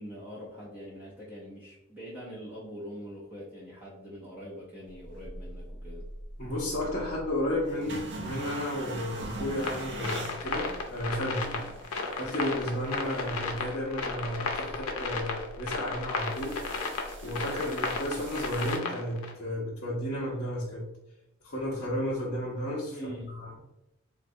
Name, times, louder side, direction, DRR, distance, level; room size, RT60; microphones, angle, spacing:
voice 1, 0.0-6.1 22.9-23.3, equal, 10° right, -7 dB, 0.6 m, -43 dB
sound 1, 4.9-18.8, right 1 dB, 55° right, 0.5 m, -43 dB
voice 2, 6.4-11.6 12.2-16.5 17.2-20.9 21.4-23.5, left 1 dB, 45° left, -7 dB, 0.6 m, -33 dB
sound 2, 9.6-19.3, left 4 dB, 85° left, 0.5 m, -34 dB
3.8 x 2.2 x 2.6 m, 0.92 s
head